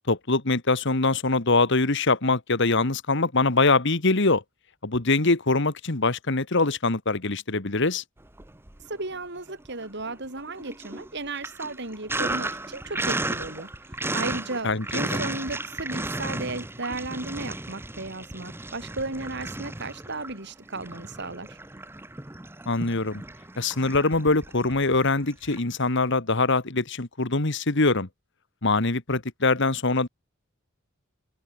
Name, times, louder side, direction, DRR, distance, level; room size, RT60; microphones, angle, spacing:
voice 1, 0.1-4.4 4.8-8.0 14.6-14.8 15.1-15.2 22.7-23.2 23.6-28.1 28.6-30.1, left 3 dB, 60° left, 2.0 m, -23 dB
Sink (filling or washing), 8.3-9.2 9.5-25.6, right 2 dB, 10° right, 0.9 m, -34 dB
voice 2, 8.9-21.6, right 2 dB, 60° right, 7.3 m, -35 dB
open air
head